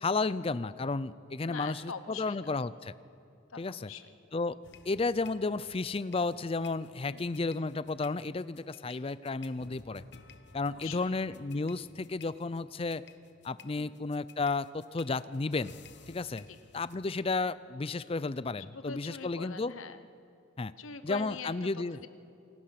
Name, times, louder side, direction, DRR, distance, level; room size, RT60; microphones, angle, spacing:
voice 1, 0.0-2.9 3.6-3.9 4.3-4.6 4.9-10.0 10.5-13.0 13.4-15.7 16.1-16.5 16.7-19.7 20.6-20.7 21.0-22.0, left 3 dB, 30° left, 16 dB, 0.5 m, -32 dB
voice 2, 1.4-2.6 3.5-4.2 7.1-7.3 10.7-11.2 13.7-14.0 16.5-16.6 18.7-20.0 20.8-22.1, left 5 dB, 90° left, 10 dB, 1.0 m, -44 dB
sound 1, 4.6-17.1, left 5 dB, 55° left, 1.0 m, -56 dB
28.5 x 21.0 x 5.9 m, 2.6 s
head